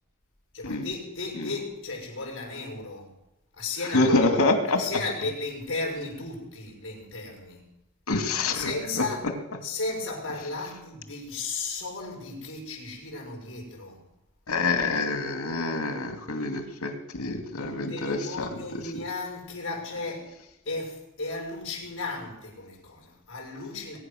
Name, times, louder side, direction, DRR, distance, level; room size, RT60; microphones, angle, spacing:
voice 1, 0.5-3.1 3.6-4.1 4.8-7.6 8.5-9.2 9.6-14.0 17.5-20.3 20.6-24.0, left 3 dB, 55° left, 6.0 m, -35 dB
voice 2, 3.9-4.8 8.1-9.1 14.5-18.5 18.9-19.0, left 2 dB, 90° left, 2.4 m, -26 dB
22.0 x 9.9 x 6.4 m
head